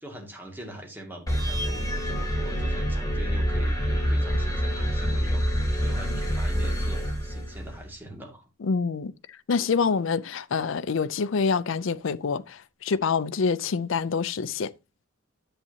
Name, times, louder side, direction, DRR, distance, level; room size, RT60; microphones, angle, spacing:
voice 1, 0.0-5.5 5.8-8.4, right 1 dB, 10° right, 2.2 m, -43 dB
sound 1, 1.3-7.9, equal, 15° left, 3.1 m, -26 dB
voice 2, 8.6-9.1 9.5-14.7, left 5 dB, 65° left, 0.5 m, -26 dB
10.0 x 8.0 x 2.8 m
head